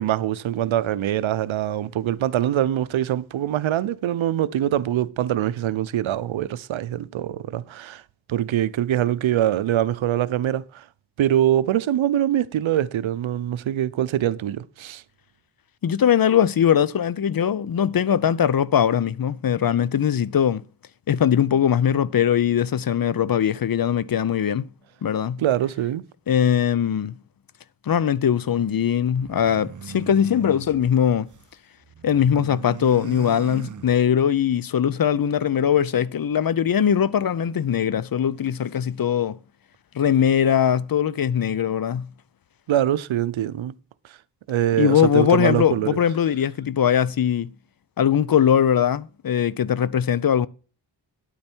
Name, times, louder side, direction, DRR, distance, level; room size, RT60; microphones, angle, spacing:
voice 1, 0.0-8.0 8.3-10.9 11.2-15.0 25.4-26.0 42.7-43.7 44.1-44.2 44.5-46.0, right 11 dB, 85° right, 0.6 m, -23 dB
voice 2, 15.8-20.6 21.1-24.7 25.0-25.4 26.3-27.2 27.9-31.3 32.0-39.4 39.9-42.1 44.8-47.5 48.0-50.5, left 9 dB, 50° left, 0.6 m, -21 dB
sound 1, 29.1-31.5 31.8-34.4, right 7 dB, 40° right, 0.7 m, -40 dB
9.5 x 8.7 x 4.4 m
cardioid pair, 55°, 46 cm